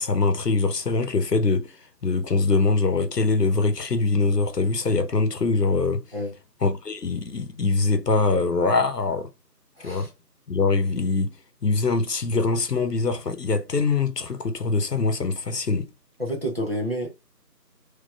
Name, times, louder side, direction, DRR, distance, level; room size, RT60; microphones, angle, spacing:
voice 1, 0.0-6.1 6.6-9.3 9.8-10.1 10.5-11.3 11.6-15.9, left 3 dB, 70° left, 0.9 m, -23 dB
voice 2, 9.8-10.1 16.2-17.1, equal, 35° right, 1.0 m, -29 dB
3.9 x 3.0 x 2.3 m
figure-of-eight pair, 175°, 49 cm